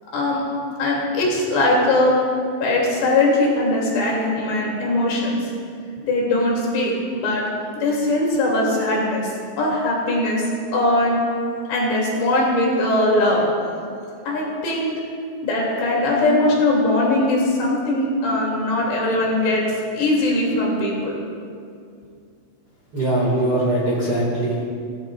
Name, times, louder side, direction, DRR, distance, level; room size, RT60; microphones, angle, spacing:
voice 1, 0.8-2.1 2.6-5.4 6.0-7.4 7.8-9.3 9.6-10.5 10.7-11.2 11.7-13.5 14.3-14.9 15.4-19.6 19.9-21.2, left 2 dB, 70° left, -3 dB, 4.7 m, -20 dB
voice 2, 22.9-24.6, right 1 dB, 45° right, -5 dB, 1.9 m, -21 dB
18.0 x 16.0 x 2.4 m, 2.3 s
omnidirectional pair, 5.1 m